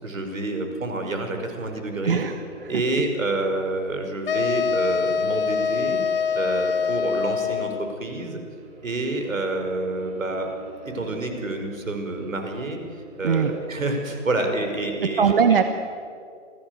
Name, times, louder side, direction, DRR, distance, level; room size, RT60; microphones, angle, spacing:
voice 1, 0.0-2.2 2.7-6.0 6.3-8.4 8.8-10.5 10.8-12.8 13.1-15.6, right 2 dB, 80° right, 5 dB, 5.2 m, -28 dB
sound 1, 1.6-15.1, right 1 dB, 20° right, 6.5 m, -45 dB
voice 2, 2.0-2.7 13.2-13.5 15.0-15.6, right 6 dB, 45° right, 8 dB, 1.2 m, -21 dB
sound 2, 4.3-7.9, left 6 dB, 45° left, 1.0 m, -24 dB
26.5 x 17.0 x 8.1 m, 2.3 s
hypercardioid pair, 160°, 39 cm